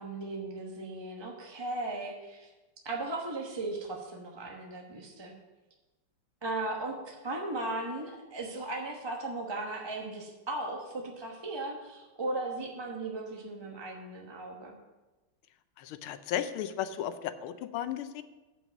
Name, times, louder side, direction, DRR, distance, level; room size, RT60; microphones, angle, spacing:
voice 1, 0.0-2.5 2.8-5.3 6.4-14.8, right 2 dB, 20° right, 0 dB, 0.6 m, -37 dB
voice 2, 15.8-18.2, left 10 dB, 80° left, 12 dB, 1.5 m, -35 dB
8.0 x 6.1 x 7.3 m, 1.1 s
omnidirectional pair, 2.3 m